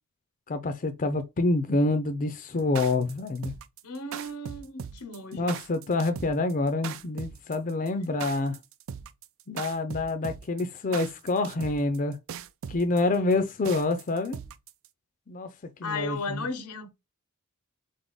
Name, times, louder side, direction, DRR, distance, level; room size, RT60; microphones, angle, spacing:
voice 1, 0.5-3.5 5.3-8.6 9.5-12.2 12.7-14.4 15.3-15.5 15.8-16.5, left 2 dB, 35° left, 0.5 m, -27 dB
sound 1, 2.6-14.9, right 7 dB, 60° right, 0.4 m, -39 dB
voice 2, 3.8-5.6 8.2-8.3 15.8-16.9, left 3 dB, 85° left, 0.8 m, -35 dB
3.9 x 3.5 x 3.9 m
head